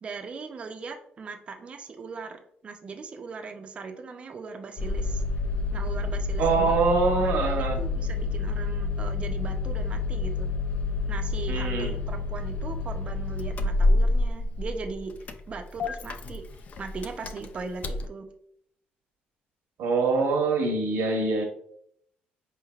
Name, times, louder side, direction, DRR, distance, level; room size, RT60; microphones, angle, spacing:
voice 1, 0.0-5.2 5.7-6.8 7.2-10.5 11.1-16.5 16.8-18.3, right 4 dB, 35° right, 0.5 m, -39 dB
Engine starting, 4.8-18.1, left 3 dB, 45° left, 0.3 m, -28 dB
voice 2, 6.4-7.8 11.5-11.9 19.8-21.4, right 4 dB, 75° right, 1.0 m, -24 dB
4.5 x 3.3 x 2.3 m
cardioid pair, 140°, 4 cm